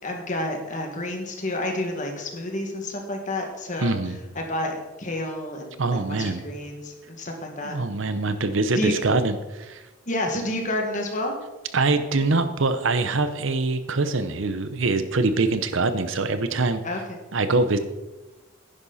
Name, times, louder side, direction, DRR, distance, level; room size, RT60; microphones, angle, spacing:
voice 1, 0.0-4.0 4.4-7.8 8.7-8.9 10.1-11.4 16.8-17.2, left 1 dB, 40° left, 2 dB, 2.0 m, -30 dB
voice 2, 3.8-4.2 5.8-6.5 7.6-9.8 11.7-16.8 17.3-17.8, right 3 dB, 65° right, 11 dB, 0.8 m, -24 dB
10.5 x 10.5 x 4.2 m, 1.1 s
head